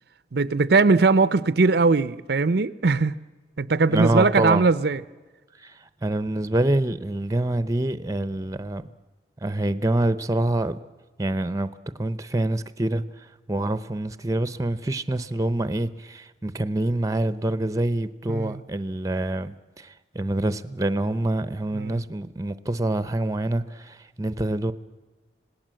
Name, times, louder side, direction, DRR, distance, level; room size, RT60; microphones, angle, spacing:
voice 1, 0.3-3.1 3.6-5.0 18.3-18.6 21.7-22.0, right 3 dB, 60° right, 0.6 m, -20 dB
voice 2, 3.8-4.6 5.6-8.8 9.4-10.8 11.2-11.7 12.0-24.7, right 1 dB, 20° right, 0.7 m, -26 dB
26.5 x 18.0 x 7.6 m
head